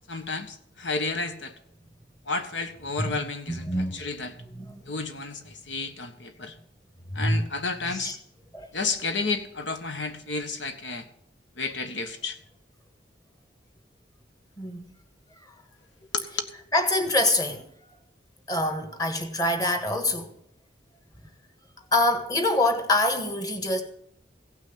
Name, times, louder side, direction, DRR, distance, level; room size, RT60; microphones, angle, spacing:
voice 1, 0.1-1.5 2.3-4.3 4.9-6.5 7.1-8.1 8.7-11.0 11.6-12.4 16.1-16.5, left 4 dB, 85° left, 1.5 m, -31 dB
voice 2, 3.5-4.0 4.4-5.0 7.1-7.4 7.8-8.2 8.5-8.7 14.6-14.9 16.7-17.6 18.5-20.3 21.9-23.8, left 1 dB, 20° left, 1.7 m, -25 dB
16.5 x 6.1 x 8.7 m
head